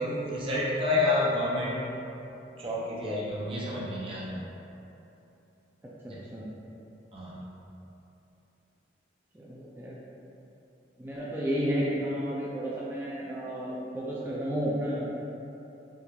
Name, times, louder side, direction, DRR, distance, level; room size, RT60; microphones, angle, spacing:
voice 1, 0.0-2.1 2.6-4.4 6.0-6.2 7.1-7.4, left 2 dB, 30° right, -7 dB, 0.8 m, -29 dB
voice 2, 9.3-10.0 11.0-15.1, equal, 10° right, -7 dB, 0.4 m, -32 dB
5.7 x 2.5 x 3.1 m, 2.9 s
head